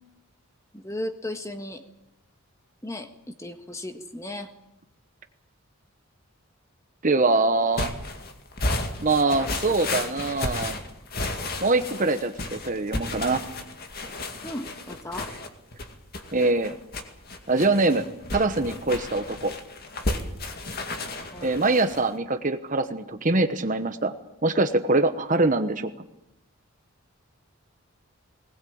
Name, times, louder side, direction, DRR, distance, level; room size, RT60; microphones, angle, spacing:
voice 1, 0.7-1.8 2.8-4.5 14.4-15.3 21.3-21.5, left 1 dB, 15° left, 6 dB, 1.5 m, -35 dB
voice 2, 7.0-7.9 9.0-10.8 11.6-13.4 16.3-16.7 17.5-19.5 21.4-24.1 24.4-25.9, right 2 dB, 35° right, 9 dB, 1.0 m, -23 dB
sound 1, 7.7-22.1, left 2 dB, 45° left, 2.2 m, -33 dB
20.5 x 19.0 x 8.7 m, 0.85 s
head